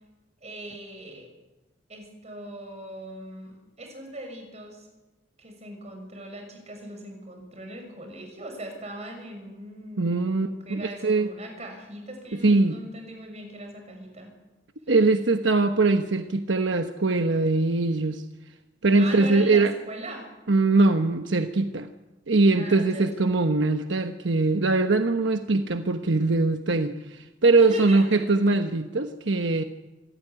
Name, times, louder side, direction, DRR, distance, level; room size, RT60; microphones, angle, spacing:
voice 1, 0.4-1.3 1.9-4.9 5.4-14.3 19.0-20.3 22.6-23.3 27.6-28.3, right 1 dB, 35° right, 4 dB, 6.3 m, -40 dB
voice 2, 10.0-11.3 12.4-12.8 14.9-18.2 18.8-19.7 20.5-21.9 22.3-29.6, right 3 dB, 75° right, 7 dB, 1.1 m, -22 dB
27.0 x 14.0 x 9.9 m, 1.1 s
head